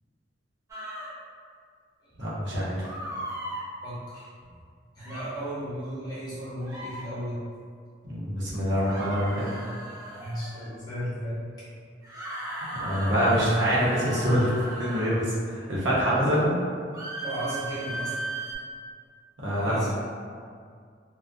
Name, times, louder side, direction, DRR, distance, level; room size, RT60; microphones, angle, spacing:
sound 1, 0.7-1.1 2.8-3.6 5.0-5.3 6.6-7.0 8.8-10.7 12.0-15.1 16.9-18.6, right 2 dB, 20° right, 0.5 m, -37 dB
voice 1, 2.2-2.9 8.0-9.5 12.7-14.5 14.8-16.5 19.4-19.8, equal, 75° right, -7 dB, 0.7 m, -25 dB
voice 2, 3.8-4.5 4.9-7.4 10.1-11.4 11.7-11.8 17.2-18.2 19.5-19.9, equal, 20° left, -11 dB, 0.7 m, -35 dB
2.3 x 2.1 x 2.5 m, 2.1 s
head